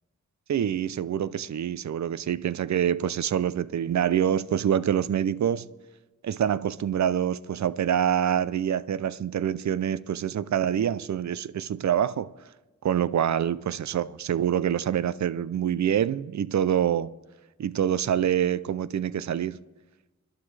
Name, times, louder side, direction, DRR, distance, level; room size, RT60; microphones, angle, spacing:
voice 1, 0.5-5.7 6.2-12.3 12.8-17.1 17.6-19.6, right 9 dB, 65° right, 0.5 m, -26 dB
27.0 x 11.5 x 3.3 m
wide cardioid pair, 125°, 30 cm